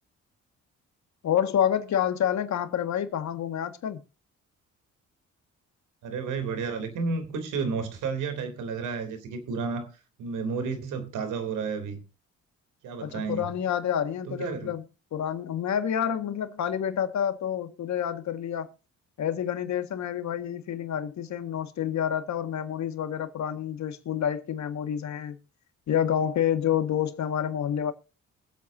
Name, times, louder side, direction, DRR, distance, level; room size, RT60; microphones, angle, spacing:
voice 1, 1.2-4.0 13.0-14.8 15.1-18.7 19.2-25.4 25.9-27.9, left 9 dB, 70° left, 1.8 m, -28 dB
voice 2, 6.0-9.9 10.2-12.0 12.8-13.5 14.2-14.7, right 5 dB, 85° right, 3.3 m, -31 dB
23.5 x 8.3 x 2.7 m
cardioid pair, 90°, 30 cm